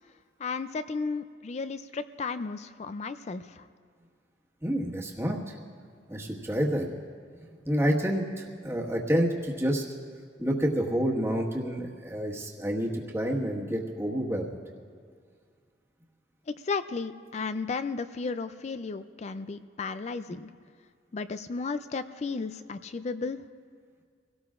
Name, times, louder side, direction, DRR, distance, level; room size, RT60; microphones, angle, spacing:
voice 1, 0.4-3.7 16.5-20.5 21.1-23.4, left 4 dB, 40° left, 11 dB, 0.4 m, -34 dB
voice 2, 4.6-5.5 6.1-6.9 7.6-9.8 10.4-14.5, equal, 15° right, -2 dB, 1.5 m, -28 dB
25.5 x 17.5 x 2.5 m, 2.1 s
head